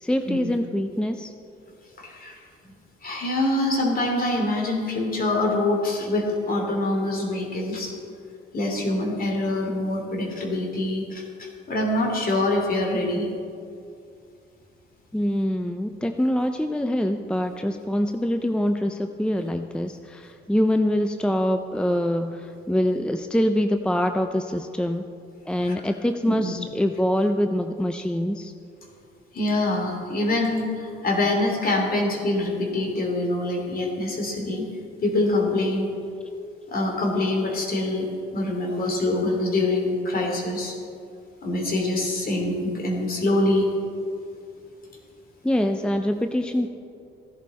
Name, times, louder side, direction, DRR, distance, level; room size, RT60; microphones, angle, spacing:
voice 1, 0.0-1.3 15.1-25.0 25.5-28.5 45.4-46.7, left 1 dB, 5° left, 7 dB, 0.5 m, -24 dB
voice 2, 2.0-2.4 3.0-7.9 8.5-13.3 25.7-25.8 26.3-26.5 29.3-34.7 35.0-35.9 36.7-38.1 38.3-40.7 41.4-43.7, left 2 dB, 45° left, 1 dB, 3.0 m, -25 dB
15.5 x 11.0 x 4.2 m, 2.4 s
cardioid pair, 90°, 20 cm